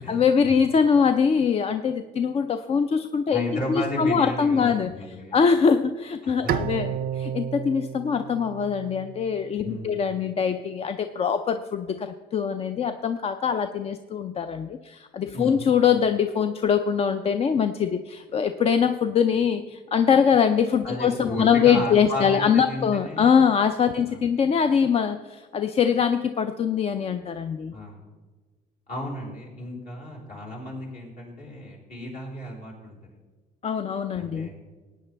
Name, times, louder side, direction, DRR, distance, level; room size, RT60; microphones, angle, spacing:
voice 1, 0.1-4.9 5.3-27.7 33.6-34.5, left 7 dB, 35° left, 9 dB, 0.4 m, -23 dB
voice 2, 3.3-5.4 6.2-6.7 9.6-9.9 15.3-15.6 20.8-23.3 24.0-24.2 27.7-28.0 28.9-33.0 34.2-34.5, left 1 dB, 60° left, -3 dB, 4.3 m, -33 dB
Bowed string instrument, 6.5-9.7, right 10 dB, 60° right, 0.4 m, -32 dB
16.0 x 9.1 x 3.3 m, 1.3 s
cardioid pair, 110°, 17 cm